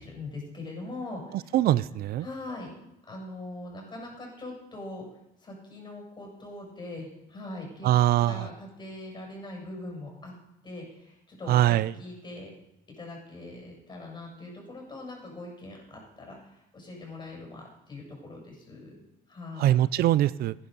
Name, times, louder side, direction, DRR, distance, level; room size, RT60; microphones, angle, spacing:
voice 1, 0.0-1.3 2.2-2.7 3.1-5.0 5.4-7.9 8.2-10.3 10.6-12.5 13.0-19.0 19.3-19.8, left 2 dB, 25° left, -1 dB, 7.5 m, -41 dB
voice 2, 1.3-2.3 7.8-8.5 11.5-11.9 19.6-20.5, right 13 dB, 65° right, 19 dB, 0.5 m, -23 dB
17.0 x 10.5 x 5.5 m, 0.87 s
cardioid pair, 110°, 17 cm